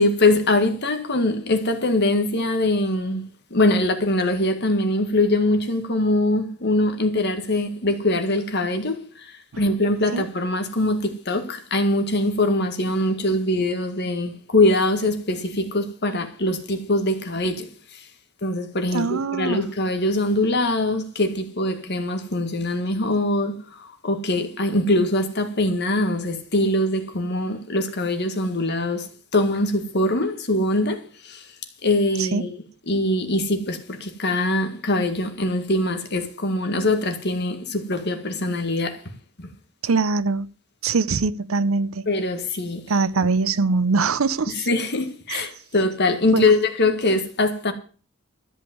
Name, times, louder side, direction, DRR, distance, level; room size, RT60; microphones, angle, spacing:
voice 1, 0.0-3.2 3.5-18.0 18.4-29.1 29.3-31.5 31.8-32.6 32.9-39.0 39.4-39.5 42.1-42.8 44.5-47.7, left 2 dB, 55° left, 1.9 m, -23 dB
voice 2, 18.9-19.6 32.2-32.4 39.8-40.5 40.8-42.0 42.9-44.7 45.3-45.4 46.3-46.5, right 4 dB, 80° right, 0.7 m, -22 dB
13.5 x 5.3 x 9.3 m
head